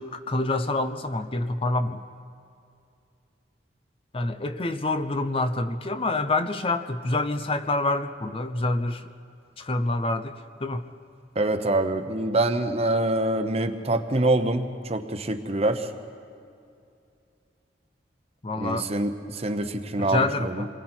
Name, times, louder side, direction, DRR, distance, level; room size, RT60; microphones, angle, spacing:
voice 1, 0.0-2.0 4.1-9.0 9.6-10.3 10.6-10.8 18.4-18.9 20.0-20.7, left 2 dB, 30° left, 9 dB, 0.7 m, -27 dB
voice 2, 11.3-15.9 18.6-20.6, right 2 dB, 35° right, 8 dB, 1.0 m, -25 dB
27.5 x 21.5 x 4.5 m, 2.5 s
head